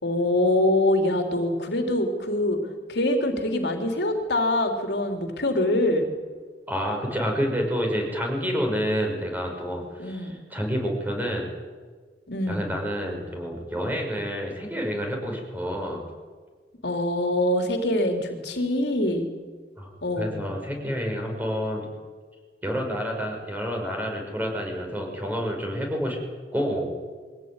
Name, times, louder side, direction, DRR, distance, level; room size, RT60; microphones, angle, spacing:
voice 1, 0.0-2.6 2.9-6.0 10.0-10.3 12.3-12.6 16.8-19.3 20.0-20.3, left 1 dB, 70° left, 4 dB, 3.8 m, -24 dB
voice 2, 6.7-11.5 12.5-16.0 19.8-19.9 20.2-21.9 22.6-26.2 26.5-26.9, equal, 10° right, 1 dB, 6.2 m, -28 dB
23.5 x 17.0 x 9.9 m, 1.5 s
head